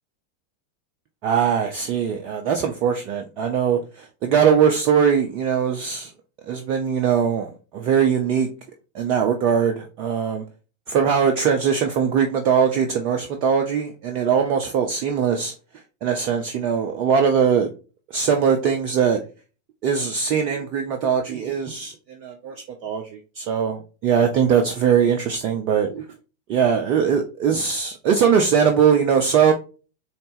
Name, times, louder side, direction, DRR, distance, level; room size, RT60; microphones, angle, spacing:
voice 1, 1.2-6.1 6.5-8.5 8.9-10.4 10.9-15.5 16.0-17.7 18.1-19.2 19.8-26.1 26.5-29.5, right 7 dB, 40° right, 4 dB, 0.5 m, -21 dB
4.3 x 3.2 x 3.3 m, 0.35 s
figure-of-eight pair, 90°, 0 cm